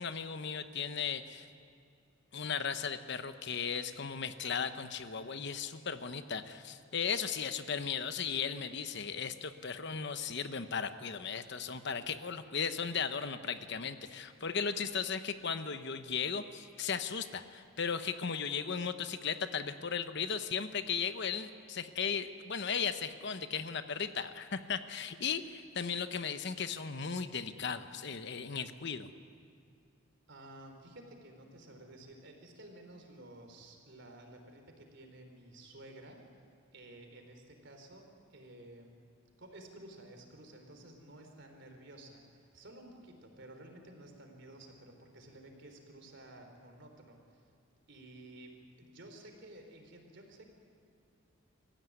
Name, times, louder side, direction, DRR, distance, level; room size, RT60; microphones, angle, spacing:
voice 1, 0.0-1.5 2.3-29.1, left 6 dB, 55° left, 10 dB, 1.0 m, -36 dB
voice 2, 30.3-36.2 36.7-38.9 39.4-47.4 47.9-50.5, right 1 dB, 60° right, 4 dB, 3.8 m, -53 dB
25.5 x 15.5 x 9.7 m, 2.4 s
head